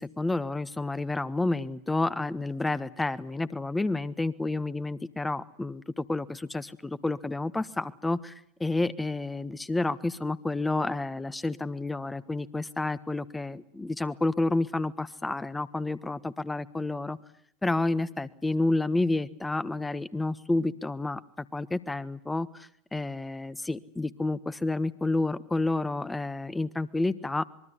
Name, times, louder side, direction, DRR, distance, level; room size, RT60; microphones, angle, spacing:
voice 1, 0.0-8.3 8.6-17.2 17.6-27.4, left 2 dB, 10° left, 15 dB, 1.4 m, -30 dB
25.5 x 22.5 x 9.8 m, 0.67 s
hypercardioid pair, 85°, 0 cm